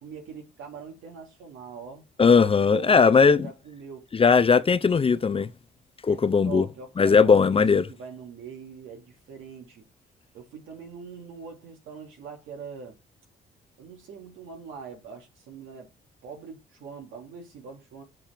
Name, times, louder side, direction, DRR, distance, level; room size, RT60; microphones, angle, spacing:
voice 1, 0.0-2.0 2.7-3.0 3.3-4.1 6.1-6.2 6.4-9.9 10.3-13.0 13.8-15.9 16.2-18.0, right 6 dB, 85° right, 2.7 m, -42 dB
voice 2, 2.2-3.5 4.1-5.5 6.0-6.7 7.0-7.9, left 5 dB, 30° left, 0.6 m, -19 dB
7.5 x 4.3 x 3.5 m
cardioid pair, 90°, 20 cm